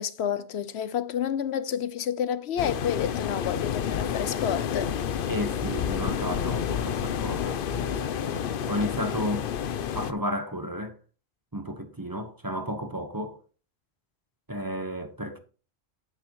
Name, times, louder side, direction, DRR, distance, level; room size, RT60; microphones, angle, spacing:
voice 1, 0.0-4.9, left 9 dB, 80° left, 1.0 m, -30 dB
sound 1, 2.6-10.1, left 8 dB, 60° left, 0.8 m, -29 dB
voice 2, 5.3-8.4 8.7-9.5 9.9-10.9 11.5-13.4 14.5-15.4, equal, 20° right, 1.1 m, -33 dB
9.4 x 9.0 x 3.0 m
omnidirectional pair, 1.1 m